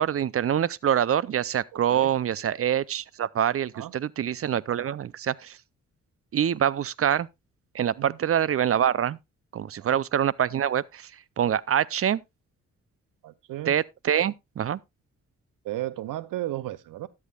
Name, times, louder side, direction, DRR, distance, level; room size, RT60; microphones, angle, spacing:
voice 1, 0.0-5.6 6.3-7.3 7.7-9.2 9.5-11.1 11.4-12.2 13.7-14.8, right 9 dB, 45° right, 0.5 m, -25 dB
voice 2, 13.2-13.8 15.6-17.1, right 15 dB, 80° right, 0.7 m, -34 dB
13.0 x 9.7 x 2.3 m
supercardioid pair, 55°, 32 cm